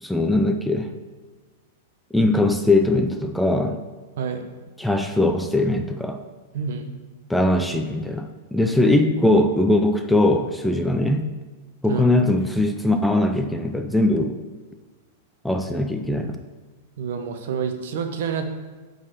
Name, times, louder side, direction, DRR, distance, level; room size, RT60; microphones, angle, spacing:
voice 1, 0.0-0.9 2.1-3.8 4.8-6.2 7.3-11.3 11.8-14.4 15.4-16.4, left 1 dB, ahead, 6 dB, 0.4 m, -21 dB
voice 2, 4.2-4.5 6.5-6.9 11.9-12.1 17.0-18.4, right 6 dB, 60° right, 6 dB, 0.9 m, -28 dB
9.5 x 4.0 x 6.6 m, 1.3 s
supercardioid pair, 165°, 0 cm